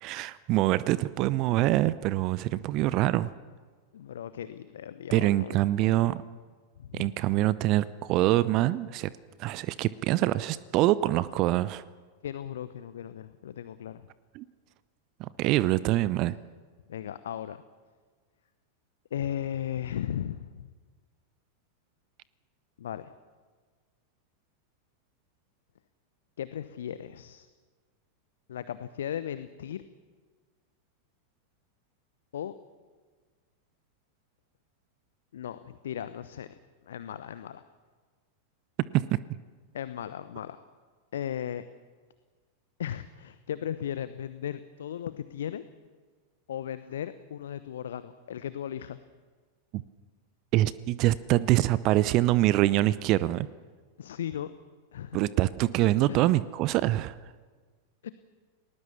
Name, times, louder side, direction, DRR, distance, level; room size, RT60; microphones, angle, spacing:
voice 1, 0.0-3.3 5.1-6.2 6.9-9.1 9.4-11.8 14.4-14.5 15.2-16.4 38.9-39.2 49.7-49.8 50.5-53.5 55.1-57.1, right 16 dB, 40° right, 18 dB, 0.7 m, -25 dB
voice 2, 3.9-5.6 6.8-7.1 12.2-14.1 16.9-17.6 19.1-20.7 22.8-23.1 26.4-27.5 28.5-29.8 32.3-32.5 35.3-36.5 36.9-37.6 39.7-40.6 41.1-41.7 42.8-45.6 46.5-49.0 54.0-54.5 54.9-55.2 56.1-56.2 58.0-58.1, left 10 dB, 60° left, 13 dB, 0.9 m, -36 dB
30.0 x 19.5 x 7.1 m, 1.5 s
figure-of-eight pair, 90°, 0 cm